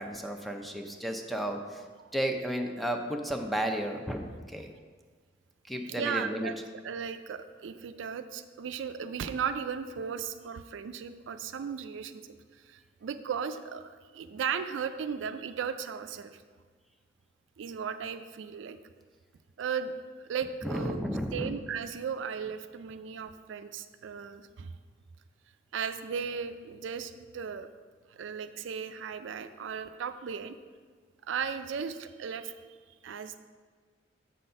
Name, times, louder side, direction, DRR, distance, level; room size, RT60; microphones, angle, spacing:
voice 1, 0.0-1.8 2.1-4.7 5.7-6.5 20.6-21.5, equal, ahead, 3 dB, 0.6 m, -33 dB
voice 2, 5.9-12.2 12.7-16.3 17.6-18.8 19.6-24.7 25.7-27.7 28.1-30.6 31.3-32.8 33.0-33.4, right 6 dB, 80° right, 10 dB, 0.4 m, -36 dB
7.4 x 4.0 x 5.6 m, 1.5 s
head